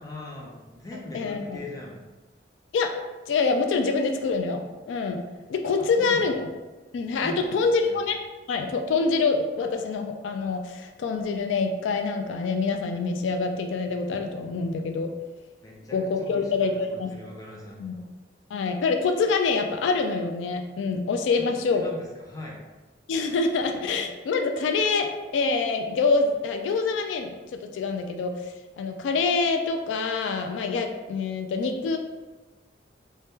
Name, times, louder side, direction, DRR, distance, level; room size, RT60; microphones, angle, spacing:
voice 1, 0.0-2.0 5.8-6.4 7.2-7.6 7.8-8.0 15.6-18.1 21.5-22.6, left 2 dB, 20° left, -2 dB, 0.5 m, -41 dB
voice 2, 1.1-1.6 2.7-3.0 3.3-5.2 5.5-6.5 6.9-8.2 8.5-15.1 15.9-17.1 17.8-17.9 18.5-21.8 23.1-32.0, left 4 dB, 85° left, 5 dB, 0.3 m, -26 dB
2.7 x 2.2 x 3.4 m, 1.2 s
head